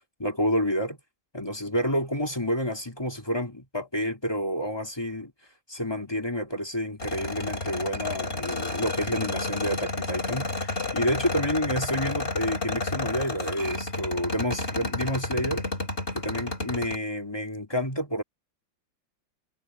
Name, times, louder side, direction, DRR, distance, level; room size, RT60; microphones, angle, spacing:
voice 1, 0.2-1.0 1.3-5.3 5.7-15.6 16.1-18.2, equal, 15° left, 2.3 m, -29 dB
sound 1, 7.0-17.0, left 2 dB, 35° left, 4.6 m, -31 dB
omnidirectional pair, 2.1 m